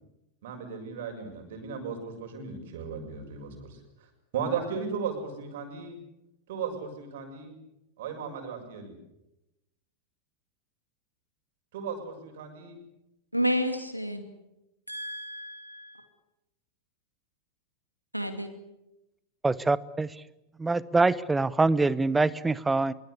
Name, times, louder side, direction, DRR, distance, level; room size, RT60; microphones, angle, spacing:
voice 1, 0.4-3.8 4.3-6.0 6.5-7.6 8.0-9.0 11.7-12.8, right 6 dB, 55° right, 6.8 m, -36 dB
voice 2, 13.3-14.2 14.9-16.1 18.1-18.5, equal, 90° right, 2.5 m, -30 dB
voice 3, 19.4-20.1 20.6-22.9, right 3 dB, 10° right, 0.9 m, -24 dB
24.5 x 23.5 x 8.3 m
figure-of-eight pair, 90°, 0 cm